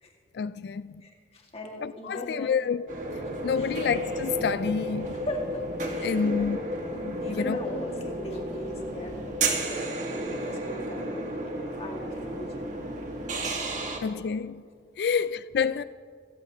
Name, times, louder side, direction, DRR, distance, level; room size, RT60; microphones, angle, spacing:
voice 1, 0.3-1.0 1.8-5.2 6.0-6.6 6.9-7.6 14.0-14.6 15.0-15.8, left 6 dB, 60° left, 0.3 m, -29 dB
voice 2, 1.0-2.5 3.6-3.8 5.1-5.6 5.9-6.5 7.2-12.1 12.4-12.8 13.9-14.0, equal, 35° left, 2.1 m, -38 dB
sound 1, 2.9-14.0, right 1 dB, 45° right, 1.9 m, -33 dB
26.0 x 15.0 x 3.1 m
head